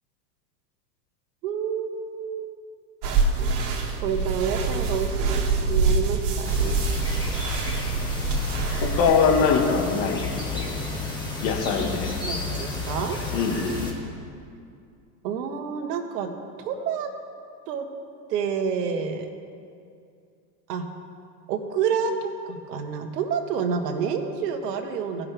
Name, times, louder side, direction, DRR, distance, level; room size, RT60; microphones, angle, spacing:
voice 1, 1.4-2.6 4.0-6.8 12.2-13.2 15.2-16.3 16.6-17.1 17.7-17.8 18.3-19.3 20.7-20.8 21.5-25.3, right 6 dB, 75° right, 5 dB, 1.4 m, -28 dB
sound 1, 3.0-9.1, right 4 dB, 55° right, 1.9 m, -25 dB
sound 2, 6.4-13.9, left 3 dB, 10° left, 2.1 m, -31 dB
voice 2, 8.8-10.8 11.4-12.1 13.3-13.8, left 5 dB, 55° left, 2 dB, 1.8 m, -23 dB
18.0 x 6.1 x 3.4 m, 2.4 s
hypercardioid pair, 115°, 49 cm